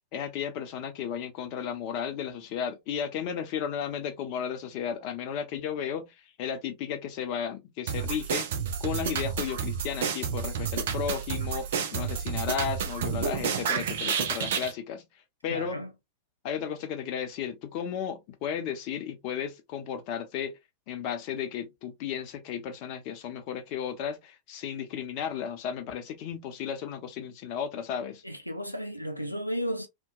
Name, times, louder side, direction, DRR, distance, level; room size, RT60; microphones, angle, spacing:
voice 1, 0.1-8.5 8.8-11.6 11.9-15.0 15.4-15.8 16.4-20.6 20.9-28.2, left 8 dB, 45° left, 0.6 m, -34 dB
sound 1, 7.9-14.7, right 7 dB, 60° right, 0.5 m, -30 dB
voice 2, 15.5-15.9 28.2-29.9, equal, 90° left, 0.3 m, -33 dB
2.8 x 2.2 x 2.3 m
figure-of-eight pair, 90°, 0 cm